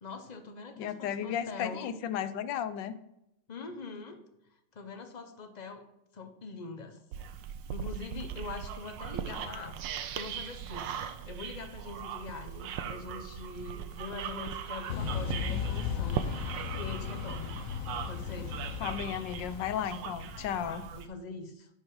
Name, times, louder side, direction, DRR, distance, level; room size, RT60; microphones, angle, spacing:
voice 1, 0.0-1.9 3.5-4.2 4.7-5.8 6.1-7.0 7.7-9.8 10.1-17.6 18.1-18.6 20.6-21.7, left 4 dB, 35° left, 6 dB, 0.7 m, -43 dB
voice 2, 0.8-3.0 18.8-20.8, left 9 dB, 80° left, 12 dB, 1.3 m, -34 dB
sound 1, 7.1-21.1, right 8 dB, 85° right, 1.4 m, -40 dB
sound 2, 9.7-12.4 12.9-13.0, right 9 dB, 65° right, 1.0 m, -47 dB
sound 3, 14.9-20.7, left 7 dB, 60° left, 0.9 m, -36 dB
10.5 x 5.1 x 4.7 m, 0.83 s
omnidirectional pair, 2.0 m